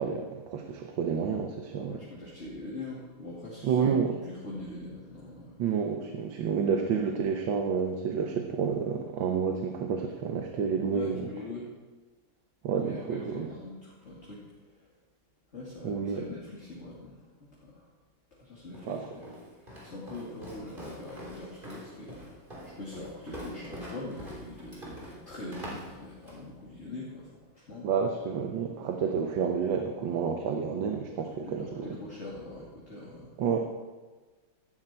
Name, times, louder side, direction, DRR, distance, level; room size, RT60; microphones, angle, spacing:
voice 1, 0.0-2.0 3.6-4.2 5.6-11.3 12.6-13.5 15.8-16.3 18.8-19.1 27.8-32.0 33.4-33.7, right 6 dB, 75° right, 4 dB, 1.7 m, -29 dB
voice 2, 1.8-5.6 10.9-11.7 12.8-14.4 15.5-17.1 17.6-17.8 18.3-19.3 19.8-22.4 22.8-27.3 27.5-27.9 31.1-33.3, left 2 dB, 35° left, -6 dB, 3.0 m, -42 dB
Walk footsteps, 18.7-26.5, equal, 25° right, 3.4 m, -45 dB
16.5 x 12.5 x 4.5 m, 1.3 s
omnidirectional pair, 2.1 m